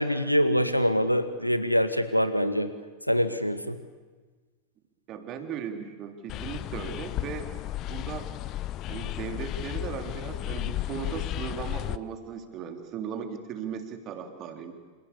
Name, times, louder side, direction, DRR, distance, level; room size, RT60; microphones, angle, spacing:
voice 1, 0.0-2.7 3.1-3.8, equal, 90° left, 10 dB, 1.8 m, -24 dB
voice 2, 5.1-7.5 7.9-8.3 8.9-14.7, right 7 dB, 35° right, 5 dB, 3.7 m, -37 dB
sound 1, 6.3-12.0, left 15 dB, 35° left, 0.8 m, -34 dB
28.5 x 27.5 x 7.1 m, 1.4 s
figure-of-eight pair, 90°, 0 cm